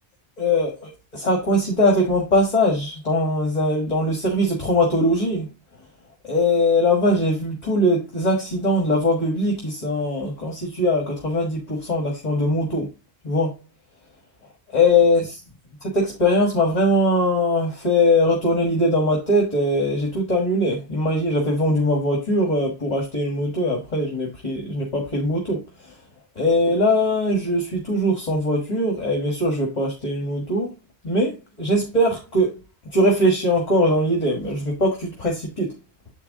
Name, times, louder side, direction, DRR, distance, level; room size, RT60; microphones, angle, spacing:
voice 1, 0.4-5.5 6.3-12.9 13.2-13.5 14.7-15.3 15.8-25.6 26.3-30.7 31.0-32.6 32.9-35.8, left 1 dB, 40° left, 1.6 m, -21 dB
7.7 x 4.6 x 3.6 m
omnidirectional pair, 1.1 m